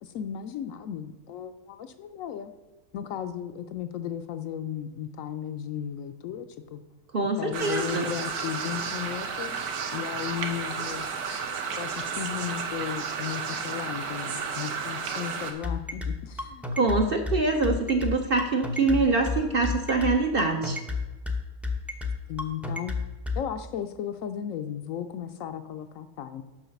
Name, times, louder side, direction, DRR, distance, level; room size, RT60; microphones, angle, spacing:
voice 1, 0.0-2.5 2.9-6.8 7.4-11.2 11.7-16.6 22.3-23.0 23.4-26.4, left 9 dB, 70° left, 9 dB, 0.9 m, -35 dB
voice 2, 7.1-8.1 16.7-20.8, right 3 dB, 50° right, 4 dB, 0.7 m, -24 dB
sound 1, 7.5-15.5, right 6 dB, 85° right, 1.5 m, -32 dB
sound 2, 15.6-23.4, left 4 dB, ahead, 0.4 m, -30 dB
7.1 x 5.5 x 6.9 m, 1.1 s
omnidirectional pair, 1.6 m